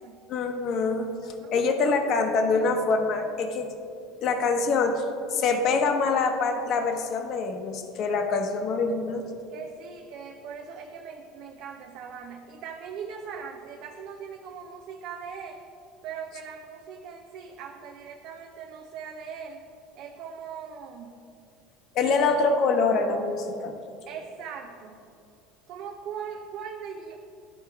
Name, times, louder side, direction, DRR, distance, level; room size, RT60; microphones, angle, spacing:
voice 1, 0.3-1.1 1.5-3.7 4.2-5.0 5.3-9.3 21.9-23.7, left 4 dB, 50° left, 5 dB, 0.9 m, -25 dB
voice 2, 1.2-1.7 9.5-15.6 16.0-19.6 19.9-21.1 24.1-25.1 25.7-27.2, right 6 dB, 60° right, 3 dB, 0.5 m, -40 dB
11.0 x 4.4 x 4.6 m, 2.5 s
supercardioid pair, 130°, 0 cm